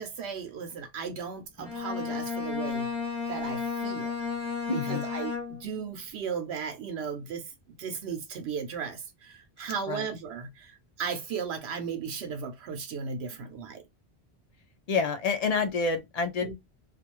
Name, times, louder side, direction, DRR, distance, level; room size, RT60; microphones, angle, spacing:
voice 1, 0.0-2.9 3.3-4.1 4.9-13.8 16.4-16.5, right 6 dB, 80° right, 0.9 m, -36 dB
Bowed string instrument, 1.6-5.8, left 5 dB, 15° left, 1.1 m, -33 dB
voice 2, 4.7-5.1 9.9-10.1 14.9-16.5, left 4 dB, 50° left, 0.5 m, -28 dB
2.4 x 2.3 x 2.9 m
omnidirectional pair, 1.1 m